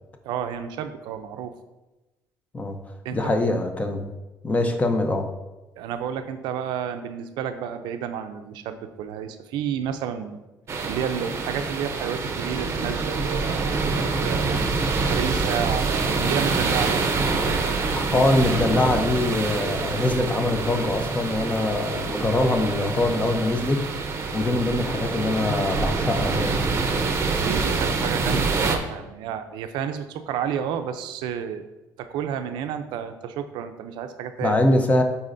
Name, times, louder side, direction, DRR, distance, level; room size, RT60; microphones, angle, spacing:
voice 1, 0.2-1.6 3.0-3.4 5.8-10.4 10.8-14.6 15.0-17.8 27.4-31.7 32.0-34.6, right 8 dB, 90° right, 8 dB, 0.5 m, -31 dB
voice 2, 3.1-4.1 4.4-5.3 17.9-23.8 24.3-26.6 34.4-35.0, left 2 dB, 20° left, 6 dB, 0.6 m, -23 dB
sound 1, 10.7-28.8, right 4 dB, 35° right, 0.7 m, -26 dB
9.7 x 4.1 x 2.6 m, 1.1 s
cardioid pair, 130°, 8 cm